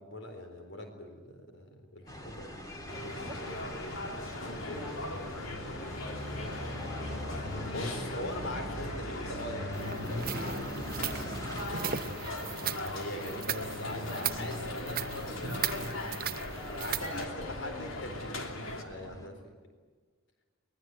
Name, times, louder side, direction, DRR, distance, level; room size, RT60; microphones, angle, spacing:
voice 1, 0.0-2.6 7.7-12.2 12.9-15.9 16.4-19.5, left 1 dB, 70° left, 5 dB, 4.0 m, -42 dB
sound 1, 2.1-19.3, left 1 dB, 20° left, 2.3 m, -42 dB
sound 2, 2.9-18.8, left 2 dB, 85° left, 3.1 m, -39 dB
voice 2, 4.5-5.4 5.7-6.0 7.7-8.3 16.5-17.9 18.9-19.3, right 1 dB, ahead, -3 dB, 1.8 m, -51 dB
sound 3, 9.7-17.3, right 10 dB, 45° right, 0.7 m, -38 dB
24.0 x 20.5 x 9.2 m, 1.5 s
head